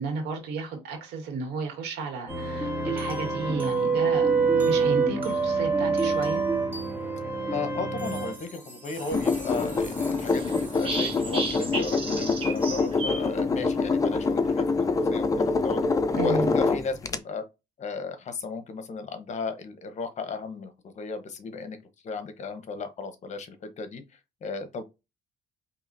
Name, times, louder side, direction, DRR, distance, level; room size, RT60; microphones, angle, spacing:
voice 1, 0.0-4.3 4.5-6.4 16.1-16.5, right 4 dB, 80° right, 1.8 m, -33 dB
sound 1, 2.3-11.2, right 4 dB, 10° right, 1.4 m, -27 dB
voice 2, 7.5-15.8 16.2-17.4 17.8-21.8 22.0-24.0 24.4-24.8, left 4 dB, 45° left, 0.9 m, -35 dB
sound 2, 8.9-14.0, right 3 dB, 30° right, 1.3 m, -35 dB
sound 3, 9.1-17.2, left 4 dB, 20° left, 0.4 m, -25 dB
4.9 x 2.9 x 2.5 m
cardioid pair, 110°, 17 cm